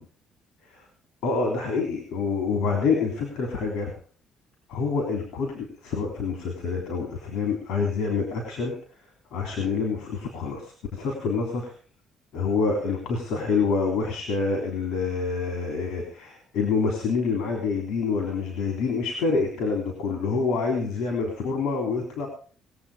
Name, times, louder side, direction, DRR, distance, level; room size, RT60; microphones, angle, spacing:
voice 1, 1.2-3.9 4.7-8.8 9.3-11.7 12.3-22.3, left 4 dB, 85° left, 3 dB, 3.5 m, -27 dB
20.5 x 8.0 x 5.0 m, 0.42 s
cardioid pair, 115°, 0 cm